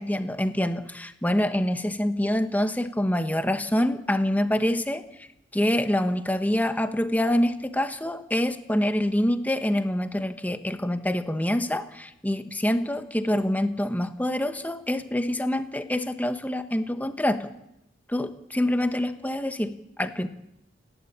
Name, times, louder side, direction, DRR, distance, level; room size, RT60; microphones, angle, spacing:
voice 1, 0.0-5.0 5.5-17.5 18.1-20.3, left 1 dB, 10° left, 9 dB, 1.2 m, -26 dB
29.5 x 12.0 x 8.7 m, 0.82 s
head